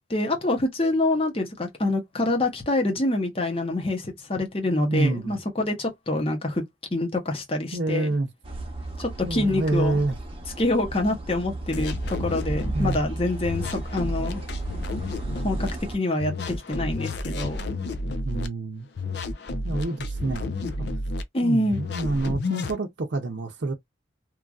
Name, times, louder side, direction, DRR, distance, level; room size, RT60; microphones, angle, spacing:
voice 1, 0.0-6.6 6.9-8.1 9.0-10.0 10.6-14.4 15.4-15.7 15.9-17.6 21.3-21.8, left 2 dB, 30° left, 0.8 m, -26 dB
voice 2, 4.9-5.4 7.7-8.3 9.2-10.2 12.7-13.0 18.2-18.9 19.6-20.9 21.4-23.7, right 2 dB, 70° right, 0.6 m, -27 dB
sound 1, 8.4-16.0, right 2 dB, 30° right, 0.8 m, -35 dB
sound 2, 11.7-13.0 13.4-15.7 16.2-18.5 19.0-21.2 21.7-22.8, left 2 dB, 60° left, 0.5 m, -31 dB
3.0 x 2.5 x 2.3 m
head